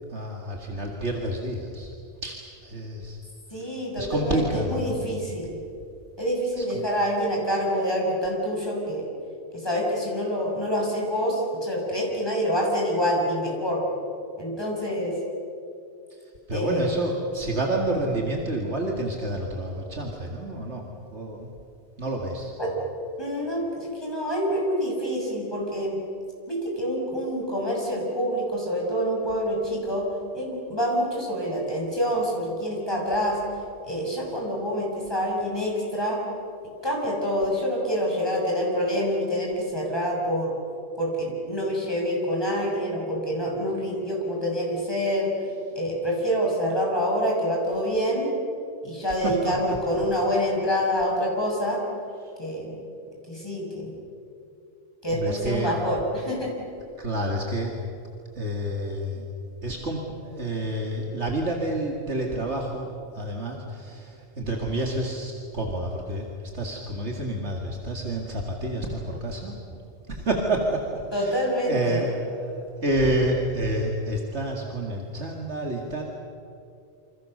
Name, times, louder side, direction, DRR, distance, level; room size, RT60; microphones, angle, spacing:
voice 1, 0.1-1.9 2.2-3.2 3.5-5.1 6.6-6.8 16.1-16.2 16.5-20.8 21.1-21.5 22.0-22.5 49.1-49.5 55.1-55.8 57.0-57.7 58.4-59.3 59.6-69.5 70.1-76.0, right 1 dB, 70° right, 0 dB, 2.6 m, -29 dB
voice 2, 3.5-5.5 6.2-9.1 9.5-13.8 14.4-15.1 16.5-16.9 22.6-22.7 23.2-26.0 26.5-30.1 30.3-33.4 33.8-36.2 36.8-40.5 41.0-45.3 45.7-48.3 48.8-51.8 52.4-52.8 53.3-53.9 55.0-56.6 71.1-72.0, equal, 20° left, -2 dB, 6.7 m, -26 dB
28.0 x 26.5 x 6.7 m, 2.6 s
omnidirectional pair, 1.2 m